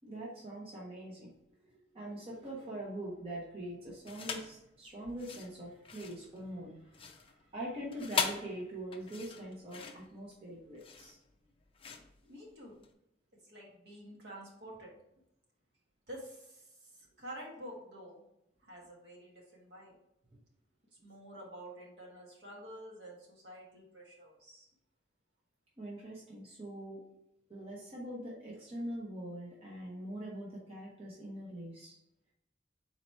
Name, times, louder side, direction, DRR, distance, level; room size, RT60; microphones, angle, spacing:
voice 1, 0.0-1.3 1.9-11.2 25.8-27.0 27.5-32.0, right 1 dB, 30° right, -5 dB, 0.9 m, -43 dB
sound 1, 4.0-4.6 5.1-12.9, left 6 dB, 30° left, 0.4 m, -40 dB
voice 2, 12.2-12.8 13.3-14.9 16.1-18.2 18.6-19.9 21.0-24.7, right 1 dB, 60° right, -2 dB, 1.3 m, -49 dB
4.1 x 2.9 x 4.5 m, 0.84 s
head